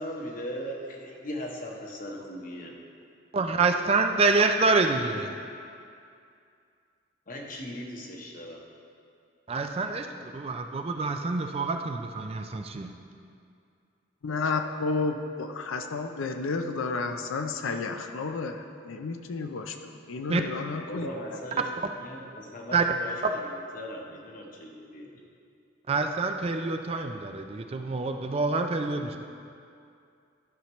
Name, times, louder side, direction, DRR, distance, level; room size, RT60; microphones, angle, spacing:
voice 1, 0.0-2.7 7.3-8.6 20.9-21.7 22.0-25.1, equal, 45° left, 0 dB, 1.1 m, -38 dB
voice 2, 3.3-5.3 9.5-10.1 10.3-12.9 20.3-20.4 22.7-22.8 23.2-23.3 25.9-29.2, right 3 dB, 30° right, 5 dB, 0.4 m, -26 dB
voice 3, 14.2-18.6 18.8-21.1, left 4 dB, 80° left, 6 dB, 0.5 m, -31 dB
13.0 x 5.7 x 3.1 m, 2.4 s
head